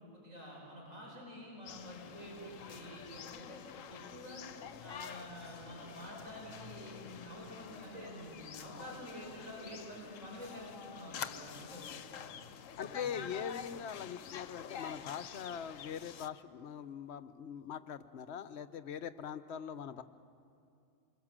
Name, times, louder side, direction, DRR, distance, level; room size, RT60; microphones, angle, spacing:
voice 1, 0.0-3.6 3.9-4.4 4.8-12.3 12.8-13.3, equal, 75° right, -2 dB, 5.4 m, -49 dB
sound 1, 1.7-16.3, left 8 dB, 75° left, 1.1 m, -48 dB
Fire, 6.9-10.3 10.6-10.7 11.2-12.1 12.6-12.7 13.0-13.3, left 6 dB, 40° left, 0.7 m, -50 dB
voice 2, 12.8-20.0, left 8 dB, 60° left, 13 dB, 1.0 m, -42 dB
26.5 x 21.5 x 7.4 m, 2.5 s
omnidirectional pair, 1.4 m